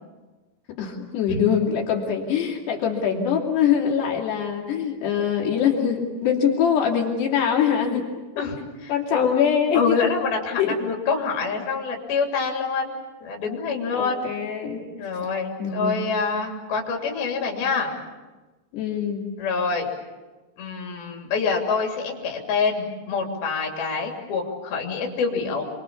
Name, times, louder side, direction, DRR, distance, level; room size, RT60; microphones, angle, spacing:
voice 1, 0.8-8.1 8.9-10.0 10.6-10.8 14.0-14.8 15.6-16.0 18.7-19.2, left 8 dB, 85° left, -2 dB, 4.9 m, -23 dB
voice 2, 8.4-9.5 9.7-14.2 15.0-17.9 19.4-19.9 20.6-25.6, left 5 dB, 65° left, 0 dB, 4.9 m, -26 dB
28.0 x 23.5 x 7.1 m, 1.2 s
omnidirectional pair, 4.7 m